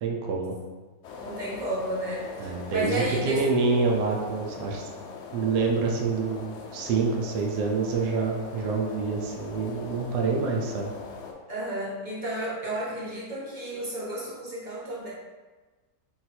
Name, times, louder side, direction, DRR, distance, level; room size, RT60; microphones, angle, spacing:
voice 1, 0.0-0.6 2.4-4.9 5.3-10.9, right 4 dB, 75° right, 0 dB, 1.1 m, -27 dB
sound 1, 1.0-11.3, left 5 dB, 85° left, 0.6 m, -41 dB
voice 2, 1.2-3.4 11.5-15.1, right 1 dB, 55° right, -7 dB, 0.5 m, -32 dB
3.9 x 2.5 x 4.2 m, 1.3 s
omnidirectional pair, 1.9 m